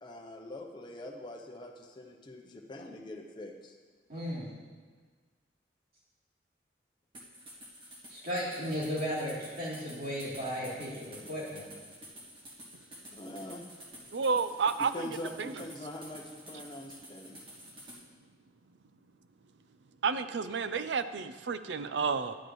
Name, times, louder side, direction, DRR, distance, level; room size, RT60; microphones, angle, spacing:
voice 1, 0.0-3.8 13.1-13.7 14.8-17.4, left 1 dB, 25° left, 1 dB, 0.7 m, -43 dB
voice 2, 4.1-4.5 8.1-11.7, equal, 55° right, -7 dB, 3.1 m, -35 dB
sound 1, 7.1-18.0, equal, 30° right, 1.7 m, -50 dB
voice 3, 14.1-15.1 15.4-15.5 20.0-22.4, right 5 dB, 70° right, 11 dB, 0.5 m, -31 dB
10.5 x 10.0 x 3.1 m, 1.5 s
head